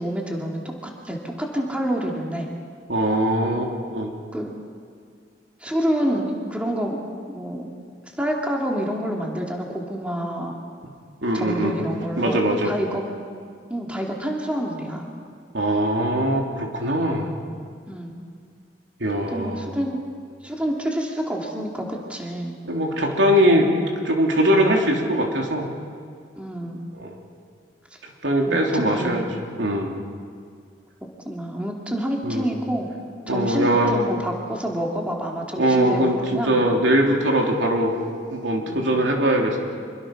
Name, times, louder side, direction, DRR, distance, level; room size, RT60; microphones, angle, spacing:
voice 1, 0.0-2.5 4.3-4.5 5.6-7.7 8.2-10.6 11.3-13.0 13.7-15.1 17.2-17.4 17.9-18.2 19.3-20.0 20.4-22.6 26.4-26.8 28.5-29.4 31.2-32.9 33.3-36.6 38.6-38.9, equal, 5° right, -1 dB, 2.8 m, -28 dB
voice 2, 2.9-4.1 11.2-11.8 12.2-12.7 15.5-17.3 19.0-19.6 22.7-23.7 24.0-25.7 26.9-27.1 28.0-29.2 29.6-29.9 32.2-32.5 33.3-34.0 35.6-37.9 38.3-39.6, right 1 dB, 85° right, 1 dB, 3.4 m, -21 dB
26.5 x 23.5 x 6.1 m, 2.1 s
head